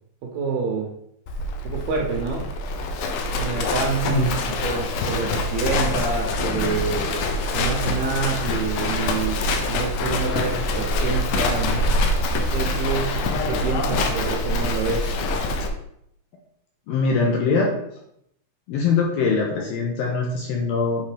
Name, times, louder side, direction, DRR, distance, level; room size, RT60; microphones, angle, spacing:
voice 1, 0.2-0.9 1.6-2.5 3.4-4.3 4.6-12.0 12.3-15.2, right 4 dB, 75° right, -1 dB, 2.4 m, -27 dB
Livestock farm animals working animals, 1.3-15.7, left 2 dB, 85° left, 2.0 m, -25 dB
voice 2, 4.1-4.6 16.9-17.7 18.7-21.1, left 4 dB, 70° left, -1 dB, 2.4 m, -22 dB
8.4 x 3.7 x 5.0 m, 0.72 s
omnidirectional pair, 5.1 m